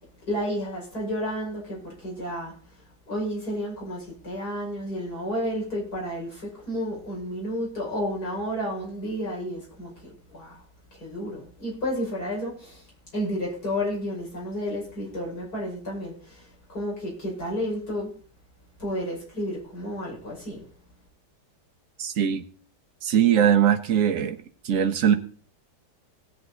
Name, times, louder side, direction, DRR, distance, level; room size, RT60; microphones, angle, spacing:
voice 1, 0.3-2.5 3.1-10.6 10.9-12.8 13.1-16.4 16.7-18.1 18.8-20.6, equal, 60° left, -4 dB, 5.9 m, -31 dB
voice 2, 22.0-22.4 23.0-24.4 24.6-25.2, right 9 dB, 55° right, 8 dB, 1.3 m, -21 dB
17.5 x 7.6 x 4.0 m, 0.42 s
omnidirectional pair, 1.8 m